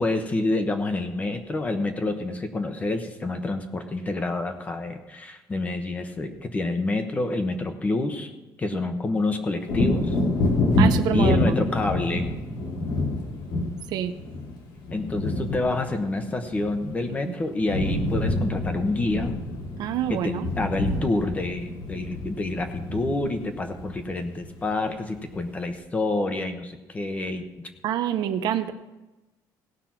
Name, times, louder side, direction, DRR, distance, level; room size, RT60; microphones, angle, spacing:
voice 1, 0.0-8.3 8.6-10.1 11.1-12.3 14.9-19.3 20.1-27.5, left 2 dB, 20° left, 7 dB, 1.0 m, -28 dB
Wind / Thunder, 9.6-17.2 17.5-24.7 25.2-25.3, left 1 dB, 85° left, 2.9 m, -27 dB
voice 2, 10.8-11.6 13.9-14.1 19.8-20.5 27.8-28.7, right 10 dB, 65° right, 10 dB, 0.7 m, -26 dB
17.5 x 5.9 x 5.9 m, 1.1 s
cardioid pair, 165°, 8 cm